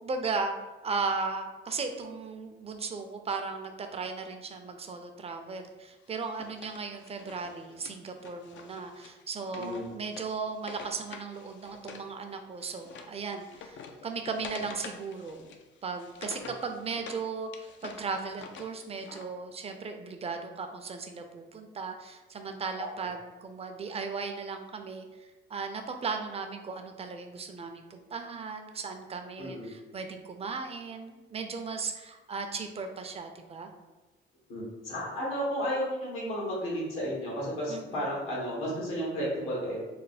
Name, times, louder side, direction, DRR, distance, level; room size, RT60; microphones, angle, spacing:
voice 1, 0.0-0.5 0.8-15.4 15.8-33.7 37.7-38.1, right 4 dB, 30° right, 5 dB, 0.5 m, -36 dB
Wood, 6.1-12.1 12.4-17.2 17.5-19.3, left 5 dB, 70° left, 0.4 m, -47 dB
voice 2, 34.5-39.8, equal, 85° left, -5 dB, 1.4 m, -33 dB
3.3 x 2.1 x 4.0 m, 1.1 s
cardioid pair, 90°, 20 cm